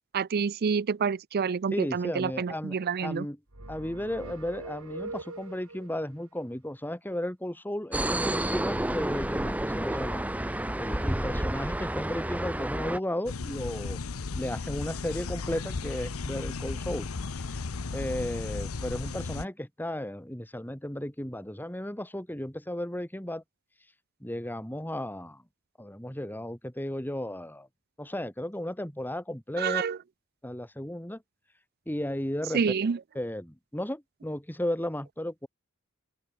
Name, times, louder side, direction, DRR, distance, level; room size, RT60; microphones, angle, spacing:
voice 1, 0.1-3.3 29.6-30.0 32.5-33.0, right 6 dB, 45° right, 0.4 m, -28 dB
voice 2, 1.7-3.4 3.7-14.0 14.3-17.1 17.3-17.6 17.9-23.4 24.2-25.4 25.8-27.7 28.0-29.8 30.4-31.2 31.9-32.6 33.1-35.5, left 1 dB, 10° left, 2.6 m, -34 dB
sound 1, 3.5-5.9, right 2 dB, 80° right, 3.7 m, -42 dB
sound 2, 7.9-13.0, right 1 dB, 5° right, 0.7 m, -30 dB
sound 3, 13.3-19.5, left 4 dB, 80° left, 0.8 m, -35 dB
open air
head